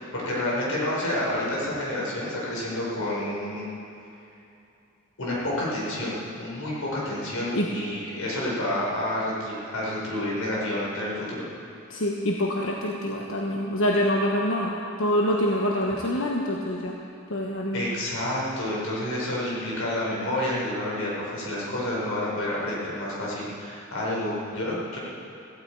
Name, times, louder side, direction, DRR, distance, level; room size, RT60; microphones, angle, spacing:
voice 1, 0.1-3.7 5.2-11.5 17.7-25.0, left 1 dB, 85° left, -5 dB, 4.7 m, -29 dB
voice 2, 11.9-16.9 17.3-17.8, equal, 70° left, -1 dB, 1.2 m, -25 dB
17.0 x 16.0 x 4.7 m, 2.7 s
head